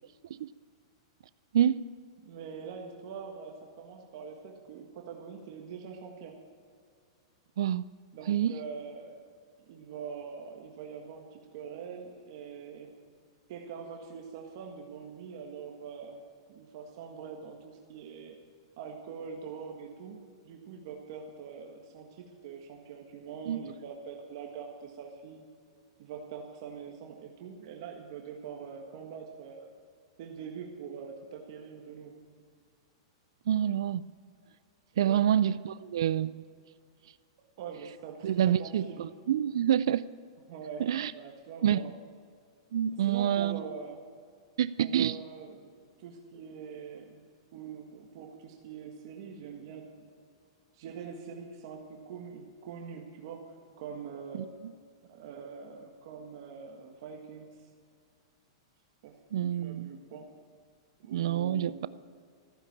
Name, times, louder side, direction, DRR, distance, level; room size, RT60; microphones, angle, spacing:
voice 1, 2.2-6.4 8.1-9.2 9.6-12.9 13.5-16.2 16.5-18.4 18.8-25.4 26.0-29.7 30.2-32.2 34.9-35.3 37.6-39.0 40.5-41.9 42.9-44.0 44.8-45.7 46.0-49.9 50.7-54.4 55.1-57.6 59.0-60.3 61.0-61.9, right 6 dB, 60° right, 2 dB, 1.7 m, -44 dB
voice 2, 7.6-7.9 8.3-8.5 23.5-23.6 33.5-34.1 35.0-36.4 38.2-40.0 40.8-41.1 41.6-41.8 42.7-43.6 44.6-45.2 54.4-54.5 59.3-59.9 61.1-61.9, right 10 dB, 75° right, 17 dB, 0.4 m, -27 dB
14.5 x 9.8 x 7.2 m, 2.1 s
hypercardioid pair, 130°, 3 cm